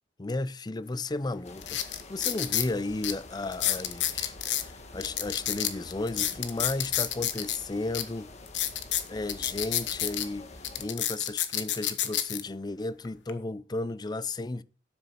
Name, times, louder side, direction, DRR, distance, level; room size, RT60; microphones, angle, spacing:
voice 1, 0.2-8.3 9.1-10.5 10.8-14.6, left 2 dB, 20° left, 0.5 m, -34 dB
sound 1, 0.9-1.0 1.6-2.7 3.0-3.1 3.5-4.6 5.0-7.6 7.9-8.0 8.5-10.3 10.6-12.4 13.0-13.3, left 11 dB, 75° left, 1.3 m, -29 dB
sound 2, 1.4-10.9, left 2 dB, 40° left, 1.6 m, -47 dB
12.5 x 6.9 x 5.6 m
head